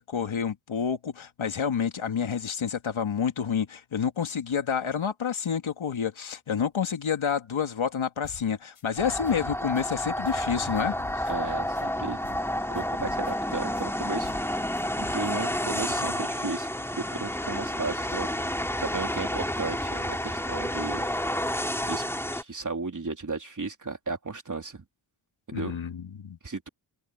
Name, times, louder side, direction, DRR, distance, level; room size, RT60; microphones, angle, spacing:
voice 1, 0.0-11.3 25.5-26.4, left 7 dB, 70° left, 2.5 m, -29 dB
sound 1, 8.2-8.5 8.7-9.8 10.2-10.5 10.7-12.5 12.7-13.8 14.2-14.5 14.7-16.2, left 7 dB, 90° left, 5.4 m, -47 dB
sound 2, 9.0-22.4, left 1 dB, 5° left, 2.8 m, -30 dB
voice 2, 11.3-12.2 12.7-14.6 15.0-16.7 17.1-21.1 21.8-22.0 22.3-24.8 25.5-25.8 26.4-26.7, right 4 dB, 40° right, 3.6 m, -34 dB
wide cardioid pair, 90°, 49 cm